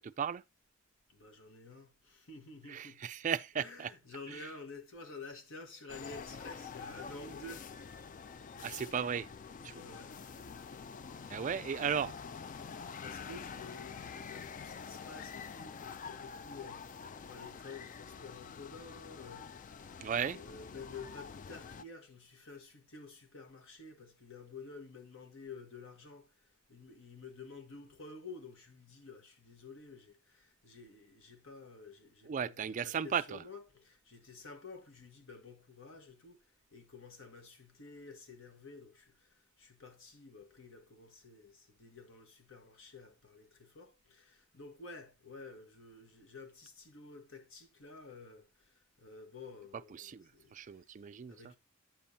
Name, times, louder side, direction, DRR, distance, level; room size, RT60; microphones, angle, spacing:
voice 1, 0.0-0.4 2.7-3.9 4.3-4.5 8.6-9.3 9.6-9.8 11.3-12.1 20.0-20.4 32.3-33.4 49.9-51.5, right 7 dB, 40° right, 0.3 m, -36 dB
voice 2, 1.1-3.1 3.5-7.7 9.7-10.2 13.0-20.1 20.3-50.9 51.3-51.6, left 3 dB, 65° left, 1.5 m, -51 dB
sound 1, 5.9-21.8, left 6 dB, 40° left, 0.4 m, -47 dB
9.2 x 7.0 x 2.7 m
head